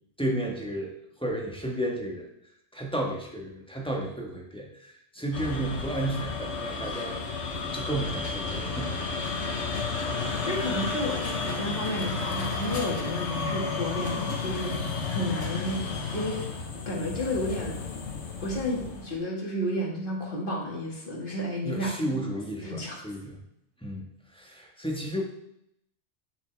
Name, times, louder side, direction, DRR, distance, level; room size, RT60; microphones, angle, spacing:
voice 1, 0.2-0.9 1.2-2.3 2.7-7.2 7.5-9.1 15.0-15.4 21.6-23.4 23.8-24.0 24.3-25.2, right 1 dB, 5° left, -1 dB, 1.5 m, -32 dB
sound 1, 5.3-19.2, left 4 dB, 70° left, 1.4 m, -32 dB
voice 2, 10.4-14.8 15.1-15.8 16.1-16.4 16.9-17.8 18.4-22.0 22.4-23.0, equal, 45° left, -2 dB, 2.2 m, -31 dB
9.2 x 7.4 x 3.4 m, 0.76 s
omnidirectional pair, 1.2 m